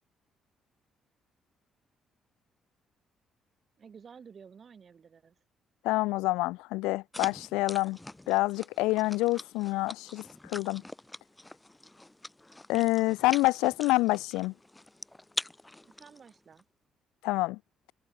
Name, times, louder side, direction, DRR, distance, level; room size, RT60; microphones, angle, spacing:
voice 1, 3.8-5.4 15.8-16.6, right 6 dB, 50° right, 3.8 m, -52 dB
voice 2, 5.8-8.0 8.3-10.8 12.7-14.5 17.2-17.6, left 21 dB, 85° left, 0.5 m, -27 dB
sound 1, 7.1-16.6, left 1 dB, 15° left, 5.0 m, -44 dB
supercardioid pair, 60°, 0 cm